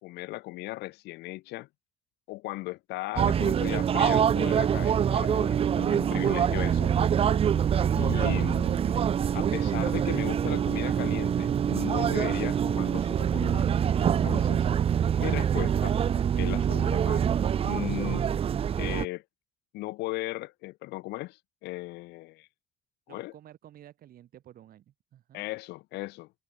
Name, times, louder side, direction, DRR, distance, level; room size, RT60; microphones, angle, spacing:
voice 1, 0.0-1.7 2.3-7.0 7.9-9.0 9.3-14.7 15.2-16.0 16.4-17.3 17.6-18.4 18.8-19.2 19.7-22.5 23.1-23.3 25.3-26.3, left 20 dB, 85° left, 0.7 m, -37 dB
sound 1, 3.2-19.1, right 8 dB, 35° right, 0.5 m, -25 dB
voice 2, 23.1-25.4, right 11 dB, 60° right, 3.1 m, -52 dB
cardioid pair, 110°, 17 cm